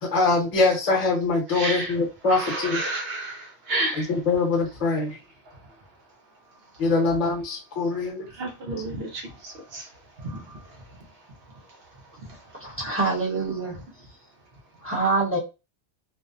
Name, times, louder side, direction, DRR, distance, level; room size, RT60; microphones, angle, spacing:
voice 1, 0.0-2.8 3.9-5.2 6.8-8.3, left 3 dB, 35° left, 0.8 m, -23 dB
voice 2, 1.5-1.9 2.3-4.1 8.4-9.8 10.2-10.6, right 2 dB, 65° right, 0.9 m, -31 dB
voice 3, 12.6-13.7 14.8-15.4, right 3 dB, 15° right, 0.8 m, -25 dB
2.6 x 2.0 x 2.4 m
omnidirectional pair, 1.2 m